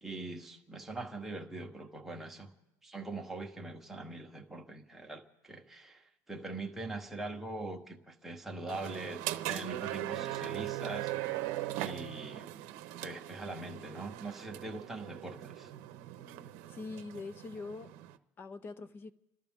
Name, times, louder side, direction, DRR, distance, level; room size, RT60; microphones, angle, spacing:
voice 1, 0.0-2.5 2.8-9.2 9.5-11.1 11.7-12.5 13.0-15.7, right 2 dB, 5° right, 1.1 m, -42 dB
sound 1, 8.7-18.2, right 15 dB, 65° right, 0.8 m, -40 dB
voice 2, 16.7-17.9 18.4-19.1, left 3 dB, 25° left, 0.6 m, -43 dB
29.5 x 13.0 x 3.6 m
cardioid pair, 165°, 9 cm